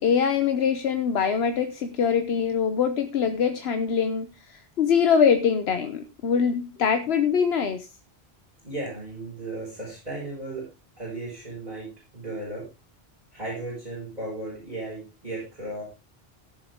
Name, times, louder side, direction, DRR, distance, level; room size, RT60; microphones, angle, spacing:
voice 1, 0.0-7.9, left 7 dB, 80° left, 1.1 m, -23 dB
voice 2, 8.6-10.7 11.0-12.7 13.3-15.8, right 2 dB, 40° right, 6.6 m, -35 dB
16.5 x 7.3 x 3.6 m
omnidirectional pair, 1.1 m